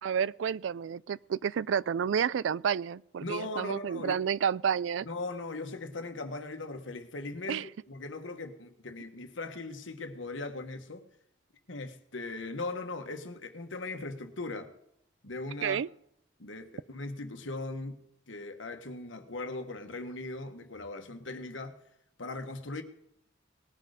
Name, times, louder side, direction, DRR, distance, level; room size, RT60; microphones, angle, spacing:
voice 1, 0.0-5.1 7.5-7.6 15.6-15.9, right 7 dB, 75° right, 0.3 m, -30 dB
voice 2, 3.2-4.2 5.0-11.1 11.7-14.7 15.2-15.8 16.4-18.0 18.3-21.8 22.2-22.8, left 2 dB, 80° left, 1.5 m, -39 dB
19.5 x 6.6 x 5.0 m
head